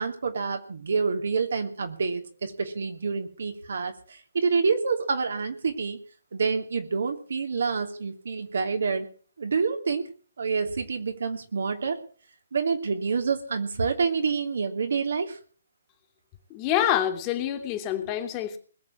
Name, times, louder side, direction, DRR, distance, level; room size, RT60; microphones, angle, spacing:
voice 1, 0.0-6.0 6.3-9.1 9.4-10.1 10.4-12.0 12.5-15.4, right 5 dB, 70° right, 5 dB, 3.1 m, -27 dB
voice 2, 16.5-18.6, left 11 dB, 30° left, 6 dB, 2.8 m, -26 dB
21.0 x 7.4 x 8.7 m, 0.41 s
figure-of-eight pair, 135°, 0 cm